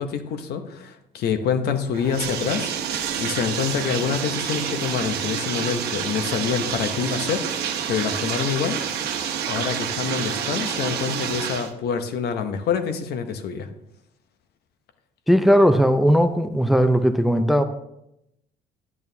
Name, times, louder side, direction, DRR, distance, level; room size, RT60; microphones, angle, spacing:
voice 1, 0.0-2.8 3.2-7.5 7.9-8.8 9.4-13.7, left 7 dB, 70° left, 0.8 m, -26 dB
Bathtub (filling or washing), 1.9-11.7, right 8 dB, 70° right, 1.0 m, -28 dB
voice 2, 15.3-17.6, equal, ahead, 0.5 m, -17 dB
11.0 x 8.9 x 2.7 m
cardioid pair, 110°, 17 cm